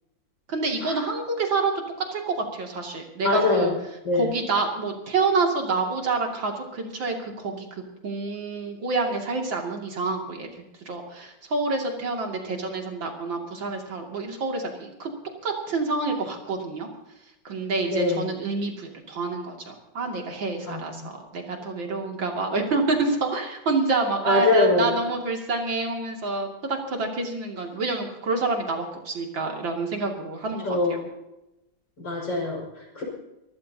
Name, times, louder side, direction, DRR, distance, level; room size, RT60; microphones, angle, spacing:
voice 1, 0.5-3.7 4.1-7.7 8.0-15.1 15.4-16.9 17.4-31.0, right 3 dB, 70° right, 1 dB, 3.3 m, -28 dB
voice 2, 3.2-3.7 4.0-4.2 17.9-18.2 20.7-20.8 24.3-24.9 30.6-31.0 32.0-33.0, left 2 dB, 65° left, -1 dB, 6.4 m, -23 dB
25.0 x 15.0 x 2.9 m, 0.92 s
omnidirectional pair, 2.1 m